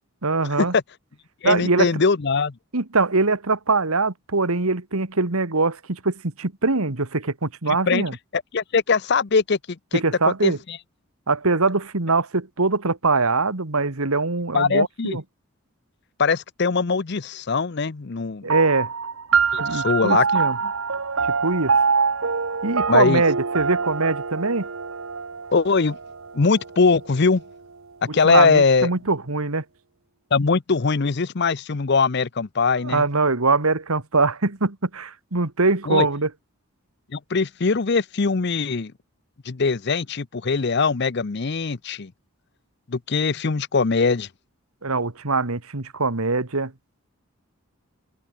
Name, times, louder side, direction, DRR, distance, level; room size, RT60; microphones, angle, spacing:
voice 1, 0.2-0.7 1.4-2.0 2.7-8.1 9.9-10.6 11.3-15.2 18.4-18.9 19.6-20.6 21.4-21.8 22.6-24.7 28.1-29.6 32.8-36.3 44.8-46.7, right 3 dB, 85° right, 1.9 m, -22 dB
voice 2, 1.4-2.5 7.7-8.0 8.3-10.0 10.4-10.8 14.5-15.2 16.2-18.4 19.5-20.3 20.6-20.7 22.9-23.2 25.5-26.0 26.3-27.4 28.1-28.9 30.3-33.0 35.9-36.1 37.1-38.9 39.5-42.1 42.9-44.3, left 4 dB, 50° left, 0.6 m, -21 dB
sound 1, 18.5-27.3, right 5 dB, 70° right, 1.2 m, -25 dB
head